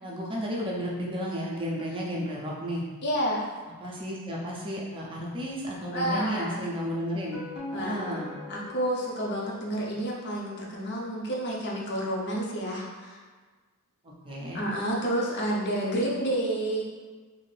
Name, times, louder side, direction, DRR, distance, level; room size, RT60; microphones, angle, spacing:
voice 1, 0.0-2.8 3.7-8.4 14.0-14.6, equal, 25° right, -3 dB, 0.5 m, -33 dB
voice 2, 3.0-3.5 5.9-6.6 7.7-8.1 8.5-13.2 14.5-16.8, right 1 dB, 50° left, -3 dB, 0.6 m, -29 dB
sound 1, 7.1-10.3, left 2 dB, 90° left, 0.7 m, -42 dB
2.7 x 2.5 x 3.2 m, 1.4 s
head